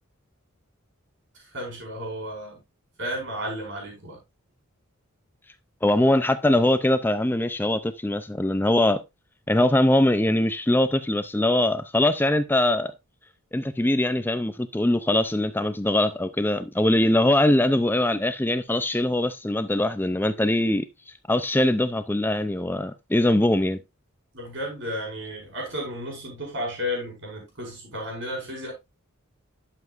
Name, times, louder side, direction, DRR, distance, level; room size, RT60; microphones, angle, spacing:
voice 1, 1.3-2.6 3.0-4.2 24.3-28.7, equal, 55° right, 4.8 m, -33 dB
voice 2, 5.8-9.0 9.5-12.9 13.5-20.9 21.3-23.8, left 1 dB, 10° left, 0.5 m, -22 dB
11.5 x 7.1 x 2.5 m
head